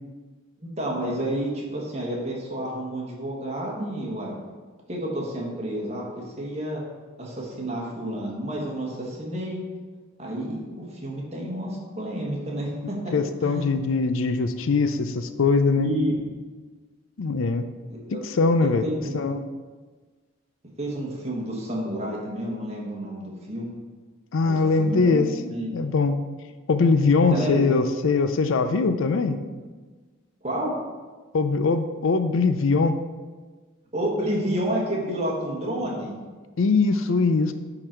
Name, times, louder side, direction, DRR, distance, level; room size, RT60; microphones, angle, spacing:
voice 1, 0.6-4.3 4.9-6.0 6.4-6.8 7.2-9.6 10.2-13.1 13.4-13.6 15.7-16.1 17.9-18.2 18.6-19.2 20.8-23.7 24.4-25.7 27.3-27.7 30.4-30.7 33.9-36.1, right 1 dB, 30° right, -2 dB, 1.5 m, -30 dB
voice 2, 13.1-15.9 17.2-17.6 18.2-18.8 19.1-19.4 24.3-25.3 25.7-26.2 26.7-29.4 31.3-33.0 36.6-37.5, left 4 dB, 70° left, 10 dB, 0.5 m, -21 dB
9.8 x 3.9 x 4.4 m, 1.4 s
head